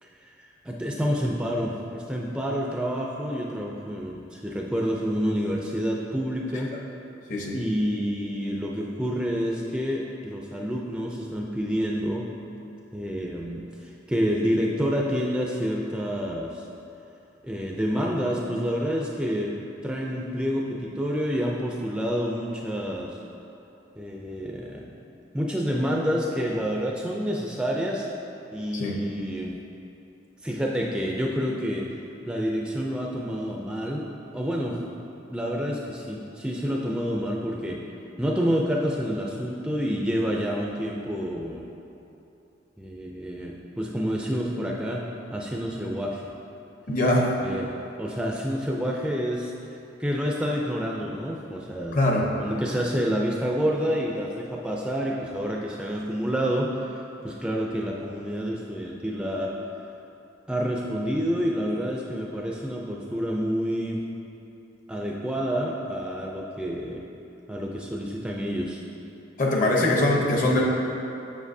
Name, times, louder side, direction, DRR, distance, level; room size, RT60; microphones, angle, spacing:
voice 1, 0.0-6.7 7.5-12.3 12.9-16.6 17.4-19.5 19.8-23.2 24.0-24.9 25.3-28.1 28.5-29.6 30.4-31.9 32.3-34.8 35.3-37.9 38.2-41.7 42.8-45.1 45.3-46.3 47.4-47.7 48.0-52.0 52.4-59.6 60.5-64.0 64.9-67.1 67.5-68.8, equal, 5° right, -2 dB, 0.4 m, -28 dB
voice 2, 46.9-47.3 51.9-52.3 69.4-70.6, left 1 dB, 45° left, -1 dB, 0.8 m, -22 dB
7.3 x 6.6 x 2.7 m, 2.8 s
head